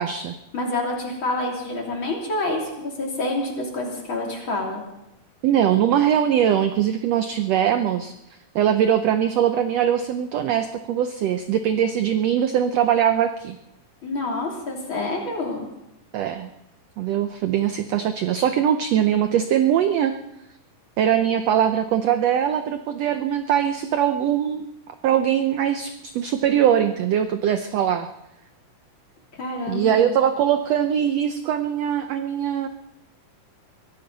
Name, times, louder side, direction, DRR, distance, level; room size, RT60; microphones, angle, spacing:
voice 1, 0.0-0.3 5.4-8.1 8.5-13.6 16.1-16.5 17.0-20.1 21.0-28.1 29.7-32.7, right 9 dB, 80° right, 9 dB, 1.5 m, -21 dB
voice 2, 0.5-4.8 14.0-15.7 29.3-30.1, left 2 dB, 40° left, -1 dB, 3.7 m, -27 dB
23.0 x 15.5 x 4.1 m, 0.86 s
omnidirectional pair, 3.8 m